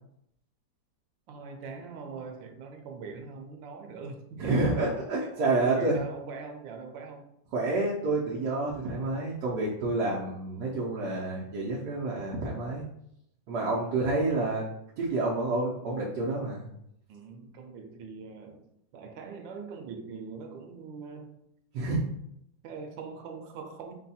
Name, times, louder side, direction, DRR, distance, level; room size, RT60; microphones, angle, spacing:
voice 1, 1.3-4.7 5.2-7.3 13.7-14.0 17.1-18.6 18.9-21.3 22.6-23.9, right 5 dB, 90° right, 1.4 m, -42 dB
voice 2, 4.4-6.0 7.5-12.9 13.5-14.7 15.0-16.7 21.7-22.0, right 2 dB, 65° right, 1.3 m, -29 dB
5.2 x 2.3 x 4.1 m
omnidirectional pair, 2.0 m